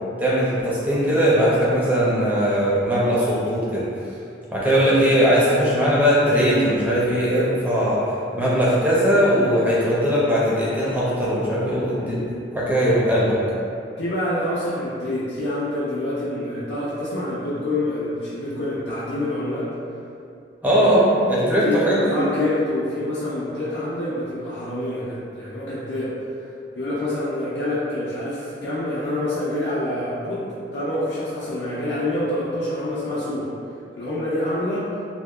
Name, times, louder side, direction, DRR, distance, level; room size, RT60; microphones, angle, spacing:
voice 1, 0.2-3.9 4.5-8.1 8.3-12.2 12.5-13.4 20.6-22.1, equal, 10° right, -8 dB, 0.4 m, -19 dB
voice 2, 14.0-19.7 21.6-26.4 26.8-33.5 34.0-34.9, left 1 dB, 70° left, -10 dB, 0.5 m, -26 dB
2.7 x 2.1 x 2.3 m, 2.5 s
head